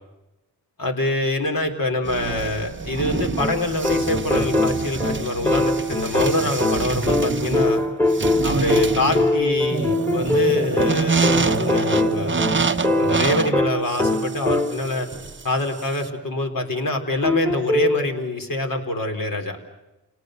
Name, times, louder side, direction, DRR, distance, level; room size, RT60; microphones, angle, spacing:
voice 1, 0.8-7.8 8.4-12.4 13.0-15.1 15.4-19.6, left 1 dB, 50° left, 3 dB, 4.0 m, -25 dB
sound 1, 2.0-16.1, right 4 dB, 30° right, 0.9 m, -26 dB
sound 2, 3.4-15.0 17.2-18.1, left 2 dB, 5° left, 2.3 m, -22 dB
29.5 x 18.5 x 6.6 m, 0.99 s
wide cardioid pair, 95°, 41 cm